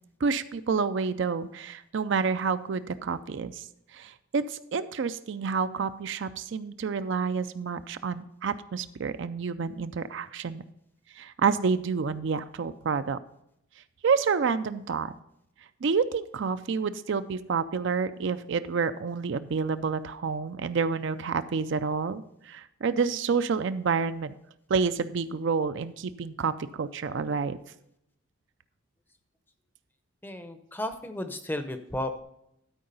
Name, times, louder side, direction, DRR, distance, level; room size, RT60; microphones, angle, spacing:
voice 1, 0.2-3.7 3.9-10.6 11.2-13.2 14.0-15.1 15.8-24.3 24.7-27.6, right 5 dB, 55° right, 12 dB, 0.4 m, -29 dB
voice 2, 30.2-32.2, left 1 dB, 10° left, 8 dB, 0.6 m, -34 dB
12.5 x 4.7 x 5.3 m, 0.78 s
head